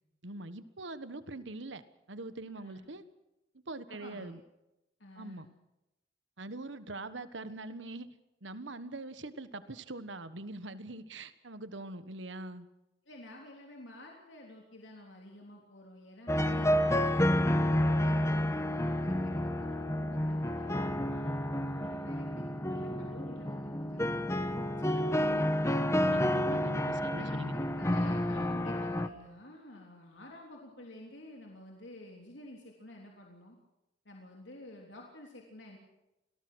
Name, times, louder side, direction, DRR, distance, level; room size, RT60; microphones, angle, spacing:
voice 1, 0.2-3.0 3.7-4.4 5.2-5.5 6.4-8.1 8.4-12.7 26.1-27.5, right 2 dB, 80° right, 13 dB, 1.4 m, -43 dB
voice 2, 2.6-2.9 3.9-4.4 5.0-5.5 13.1-24.2 24.8-25.5 27.0-33.6 34.1-35.8, left 1 dB, 75° left, 0 dB, 3.4 m, -51 dB
sound 1, 16.3-29.1, left 1 dB, 15° left, 1.2 m, -30 dB
26.0 x 18.5 x 6.3 m, 0.93 s
head